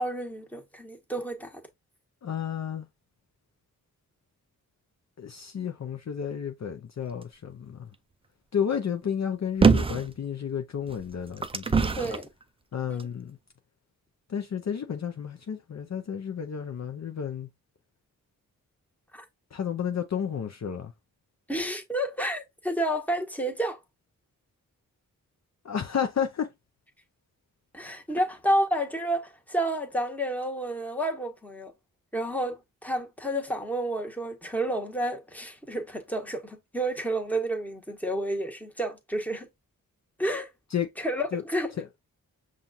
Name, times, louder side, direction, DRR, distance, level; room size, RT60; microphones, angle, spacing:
voice 1, 0.0-1.6 12.0-12.3 12.9-13.1 19.1-19.2 21.5-23.8 27.7-31.7 32.1-39.5 40.2-40.5 41.0-41.7, right 1 dB, 5° left, 1.3 m, -30 dB
voice 2, 2.2-2.9 5.2-7.9 8.5-11.9 12.7-13.4 14.3-17.5 19.5-20.9 25.6-26.5 40.7-40.9 41.3-41.4 41.8-42.0, left 8 dB, 50° left, 0.6 m, -31 dB
sound 1, 9.6-10.1 10.9-12.2 13.0-13.1, right 4 dB, 15° right, 0.4 m, -22 dB
5.6 x 2.5 x 2.7 m
cardioid pair, 50°, 36 cm